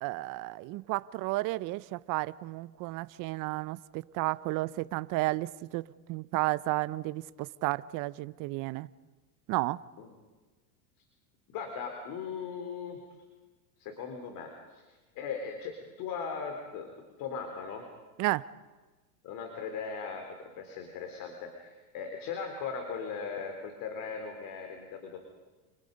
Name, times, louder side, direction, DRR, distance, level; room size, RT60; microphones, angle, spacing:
voice 1, 0.0-8.9 9.5-9.8 18.2-18.5, right 20 dB, 45° right, 0.8 m, -32 dB
voice 2, 11.5-13.0 13.8-16.9 17.2-17.9 19.2-25.2, left 5 dB, 45° left, 3.8 m, -39 dB
29.5 x 29.0 x 5.4 m
supercardioid pair, 135°, 45 cm